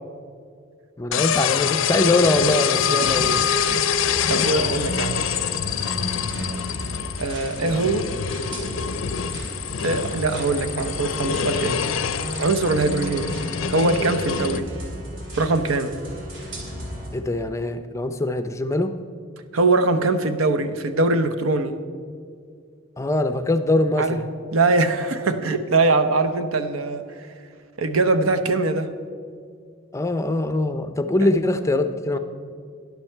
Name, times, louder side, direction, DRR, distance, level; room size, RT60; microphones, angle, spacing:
voice 1, 1.0-3.4 7.6-8.1 17.1-18.9 23.0-24.3 29.9-32.2, left 2 dB, 15° left, 9 dB, 0.4 m, -23 dB
sound 1, 1.1-14.6, left 7 dB, 70° left, 0.5 m, -25 dB
sound 2, 3.0-17.1, equal, 60° right, 3.1 m, -34 dB
voice 2, 4.3-5.3 7.2-8.0 9.8-11.8 12.4-13.4 13.7-14.7 15.4-15.9 19.5-21.8 24.0-24.2 24.5-27.0 27.8-28.9, right 3 dB, 85° right, 10 dB, 0.7 m, -22 dB
12.0 x 10.5 x 4.5 m, 2.2 s
head